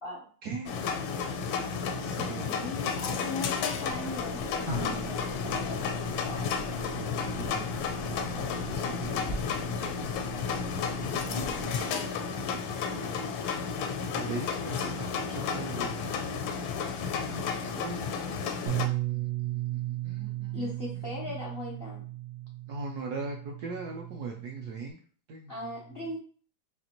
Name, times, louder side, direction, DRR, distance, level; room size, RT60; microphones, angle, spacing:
voice 1, 0.4-0.7 1.8-2.7 6.2-10.0 11.0-13.1 14.1-16.3 17.6-21.4 22.7-25.0 25.3-25.7, right 3 dB, 70° right, 0 dB, 0.9 m, -42 dB
sound 1, 0.7-18.9, left 6 dB, 80° left, 1.4 m, -32 dB
voice 2, 2.5-6.5 14.2-14.6 20.5-22.0 25.5-26.2, left 2 dB, 55° left, -4 dB, 0.6 m, -39 dB
sound 2, 4.6-11.8, left 1 dB, 40° right, 0.3 m, -39 dB
Bass guitar, 18.7-24.9, right 16 dB, 85° right, 1.5 m, -35 dB
4.2 x 3.1 x 2.9 m, 0.43 s
omnidirectional pair, 2.2 m